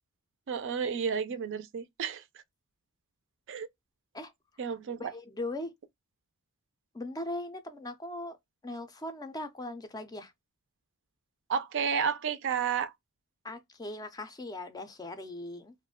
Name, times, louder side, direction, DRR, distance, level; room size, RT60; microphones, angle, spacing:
voice 1, 0.5-2.2 3.5-3.7 4.6-5.1 11.5-12.9, right 7 dB, 55° right, 0.4 m, -31 dB
voice 2, 4.7-5.7 6.9-8.4 8.6-10.3 13.4-15.7, left 1 dB, 15° left, 0.4 m, -39 dB
2.4 x 2.1 x 3.5 m
head